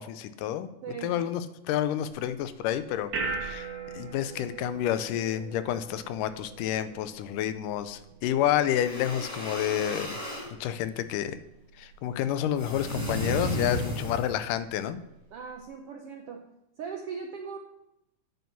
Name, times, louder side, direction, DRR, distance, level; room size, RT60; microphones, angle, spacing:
voice 1, 0.0-0.7 1.0-1.4 1.7-3.1 3.4-3.7 3.9-10.2 10.6-11.4 11.8-15.0, left 11 dB, 85° left, 12 dB, 2.2 m, -29 dB
voice 2, 0.8-1.2 15.3-16.5 16.8-17.6, right 6 dB, 75° right, 3 dB, 1.3 m, -39 dB
sound 1, 2.1-15.6, right 4 dB, 55° right, 2.1 m, -43 dB
sound 2, 8.7-10.5 12.6-14.5, equal, 30° left, 5.8 m, -33 dB
9.2 x 8.1 x 5.9 m, 0.85 s
omnidirectional pair, 3.7 m